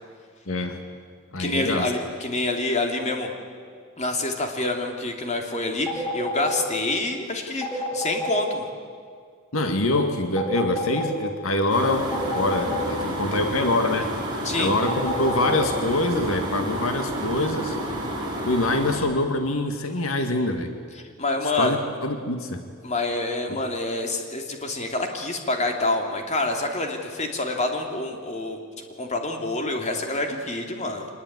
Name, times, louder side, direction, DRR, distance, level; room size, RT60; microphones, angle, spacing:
voice 1, 0.5-0.8 1.3-1.9 9.5-14.1 14.6-17.8 18.5-20.7 21.4-22.6 23.5-23.6, left 2 dB, 75° left, 6 dB, 1.9 m, -25 dB
voice 2, 1.4-3.3 4.0-8.7 14.4-14.7 21.2-21.8 22.8-28.6 29.0-31.1, left 2 dB, 35° left, 3 dB, 2.8 m, -27 dB
sound 1, 5.9-6.6 7.6-8.4 10.4-11.1 12.1-12.9 14.9-15.6, left 3 dB, 5° left, 5.4 m, -29 dB
sound 2, 11.7-19.0, right 1 dB, 20° right, 5.6 m, -30 dB
25.5 x 20.0 x 9.6 m, 2.1 s
head